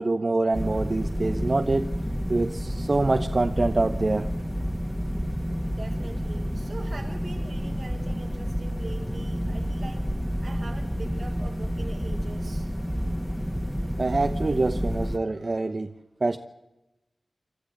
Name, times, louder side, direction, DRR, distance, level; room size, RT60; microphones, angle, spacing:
voice 1, 0.0-1.9 2.3-4.3 14.0-15.9 16.2-16.4, right 2 dB, 45° right, 8 dB, 0.9 m, -25 dB
sound 1, 0.5-15.2, equal, 5° left, 1.8 m, -29 dB
voice 2, 5.7-10.0 10.4-12.7, right 3 dB, 75° right, 1 dB, 5.3 m, -43 dB
28.0 x 13.0 x 8.5 m, 1.0 s
wide cardioid pair, 60°, 0 cm